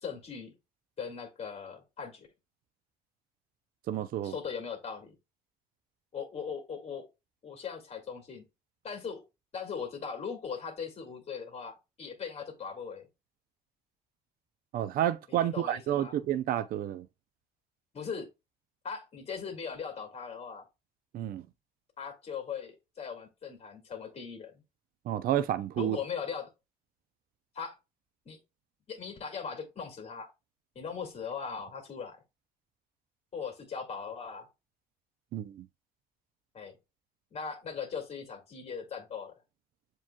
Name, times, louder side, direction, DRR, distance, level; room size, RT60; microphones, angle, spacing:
voice 1, 0.0-0.5 1.0-2.3 4.2-5.1 6.1-7.1 7.4-8.4 8.8-9.2 9.5-13.1 15.3-16.1 17.9-18.3 18.8-20.6 22.0-24.5 25.8-26.5 27.5-27.8 28.3-28.4 28.9-30.3 30.8-32.2 33.3-34.5 36.5-36.8 37.3-39.3, left 6 dB, 40° left, 2.1 m, -39 dB
voice 2, 3.9-4.3 14.7-17.1 21.1-21.5 25.1-26.0 35.3-35.7, right 11 dB, 60° right, 0.5 m, -30 dB
7.3 x 3.0 x 2.2 m
cardioid pair, 110°, 17 cm